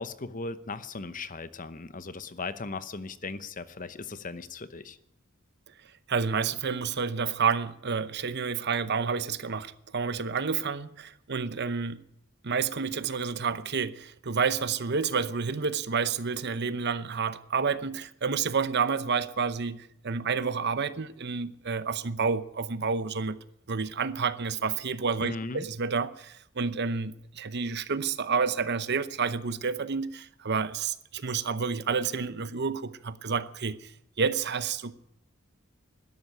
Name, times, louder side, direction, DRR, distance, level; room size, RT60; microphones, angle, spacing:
voice 1, 0.0-5.0 25.2-25.7, left 3 dB, 40° left, 0.9 m, -37 dB
voice 2, 6.1-12.0 12.4-23.4 23.7-33.9 34.2-34.9, right 5 dB, 55° right, 0.8 m, -29 dB
13.0 x 11.0 x 9.8 m
head